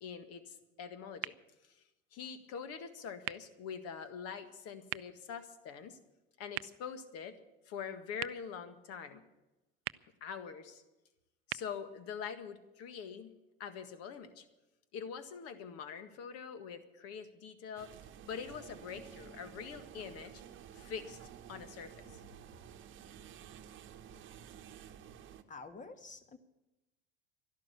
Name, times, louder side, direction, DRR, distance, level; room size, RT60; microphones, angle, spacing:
voice 1, 0.0-1.3 1.6-1.8 2.1-6.0 6.4-7.4 7.7-9.2 10.2-10.8 11.5-14.5 14.9-17.9 18.3-20.4 20.7-21.2 21.5-22.2, left 6 dB, 55° left, 1.7 m, -44 dB
sound 1, 1.2-13.1, right 20 dB, 75° right, 0.4 m, -49 dB
sound 2, 17.8-25.4, right 9 dB, 40° right, 1.1 m, -52 dB
voice 2, 25.5-26.4, left 4 dB, 25° left, 1.5 m, -48 dB
12.5 x 11.5 x 8.3 m
hypercardioid pair, 90°, 29 cm